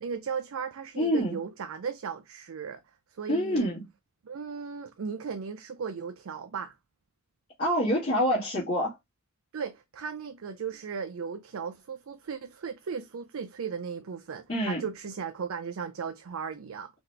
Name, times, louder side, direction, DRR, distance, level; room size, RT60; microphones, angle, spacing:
voice 1, 0.0-2.8 3.1-3.7 4.2-6.7 9.5-16.9, right 6 dB, 70° right, 0.4 m, -36 dB
voice 2, 1.0-1.4 3.3-3.9 7.6-8.9 14.5-14.8, equal, 40° left, 1.5 m, -26 dB
3.9 x 2.9 x 3.1 m
head